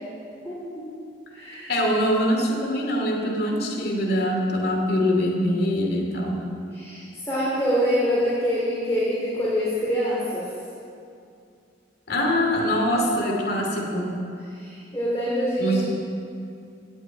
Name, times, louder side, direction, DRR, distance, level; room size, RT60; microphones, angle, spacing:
voice 1, 0.4-0.8 1.3-1.8 6.7-10.5 14.5-15.8, equal, 15° left, -9 dB, 3.4 m, -25 dB
voice 2, 1.7-6.4 12.1-14.2 15.6-15.8, equal, 55° left, 0 dB, 2.6 m, -23 dB
18.0 x 7.2 x 8.9 m, 2.5 s
head